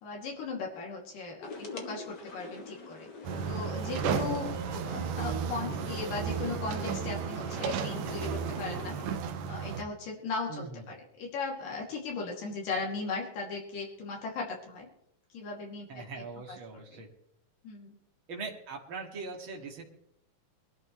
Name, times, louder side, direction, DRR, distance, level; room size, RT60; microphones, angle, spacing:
voice 1, 0.0-3.1 3.5-4.5 4.8-9.0 9.5-14.9 15.3-15.9 16.5-17.0 17.6-18.0, left 4 dB, 80° left, -1 dB, 4.3 m, -37 dB
sound 1, 1.4-9.2, left 3 dB, 45° left, 1.4 m, -44 dB
sound 2, 3.2-9.8, right 7 dB, 75° right, 2.4 m, -33 dB
voice 2, 10.5-10.9 15.9-17.1 18.3-19.8, right 4 dB, 40° right, 1 dB, 2.7 m, -41 dB
23.0 x 12.5 x 3.2 m, 0.76 s
omnidirectional pair, 3.8 m